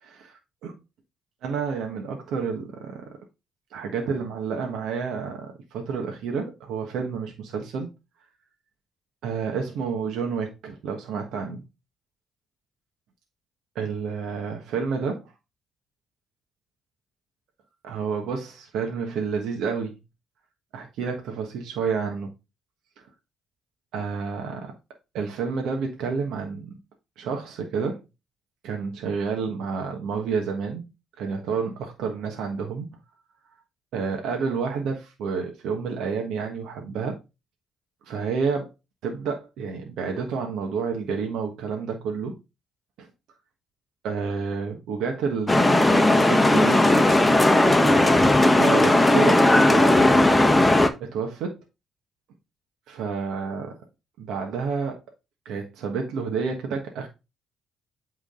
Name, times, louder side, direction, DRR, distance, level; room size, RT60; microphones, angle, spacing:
voice 1, 0.0-0.7 1.4-3.2 3.7-7.9 9.2-11.6 13.7-15.3 17.8-20.0 20.7-22.3 23.0-23.1 23.9-24.7 25.1-26.8 27.2-28.0 28.6-30.8 31.2-32.9 33.9-37.2 38.1-38.7 39.0-42.4 43.0-43.1 44.0-46.8 48.6-50.3 51.0-51.6 52.9-53.8 54.2-55.0 55.4-57.1, right 5 dB, 85° right, 1.3 m, -30 dB
sound 1, 45.5-50.9, left 1 dB, 10° left, 1.0 m, -17 dB
8.5 x 3.8 x 3.7 m
cardioid pair, 90°, 0 cm